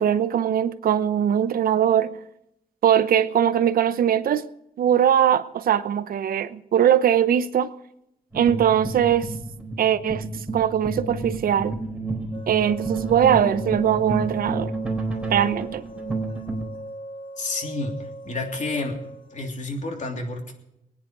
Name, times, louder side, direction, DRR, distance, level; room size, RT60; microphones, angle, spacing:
voice 1, 0.0-2.2 2.8-4.5 4.8-7.7 8.3-9.3 9.8-11.7 12.5-14.9 15.3-15.8, right 9 dB, 75° right, 0.8 m, -21 dB
sound 1, 8.3-16.7, right 3 dB, 5° right, 4.1 m, -30 dB
sound 2, 12.3-19.5, right 1 dB, 35° left, 1.8 m, -39 dB
voice 2, 17.4-18.9 19.3-20.5, left 2 dB, 55° left, 3.1 m, -30 dB
21.5 x 9.6 x 5.2 m
cardioid pair, 110°, 15 cm